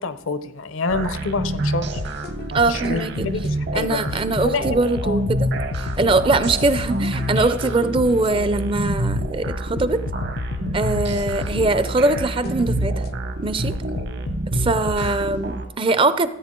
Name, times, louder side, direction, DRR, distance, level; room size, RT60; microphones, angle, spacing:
voice 1, 0.0-2.0 2.6-4.7 5.0-5.2 10.6-10.8, left 3 dB, 70° left, 12 dB, 0.7 m, -27 dB
sound 1, 0.9-15.7, right 1 dB, 55° right, 1.0 m, -27 dB
sound 2, 2.0-3.5 4.1-8.3 8.9-13.1 13.7-15.1, left 4 dB, 45° left, 0.3 m, -32 dB
voice 2, 2.5-3.3 3.7-5.5 5.8-10.0 10.7-13.0 13.4-13.7 14.5-16.3, right 2 dB, 25° right, 14 dB, 0.4 m, -21 dB
14.5 x 8.3 x 3.7 m, 0.84 s
head